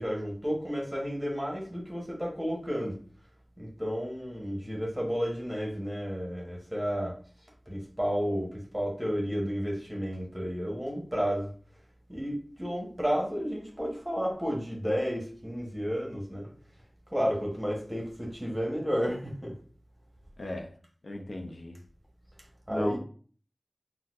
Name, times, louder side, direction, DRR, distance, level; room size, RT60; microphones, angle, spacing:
voice 1, 0.0-3.0 3.6-7.1 7.7-11.5 12.1-16.5 17.1-19.5 22.7-23.0, equal, 10° right, -2 dB, 1.1 m, -32 dB
voice 2, 20.4-20.8 21.0-21.8 22.7-23.0, left 1 dB, 75° left, 3 dB, 0.5 m, -35 dB
4.0 x 2.1 x 2.5 m, 0.43 s
wide cardioid pair, 45°, 0 cm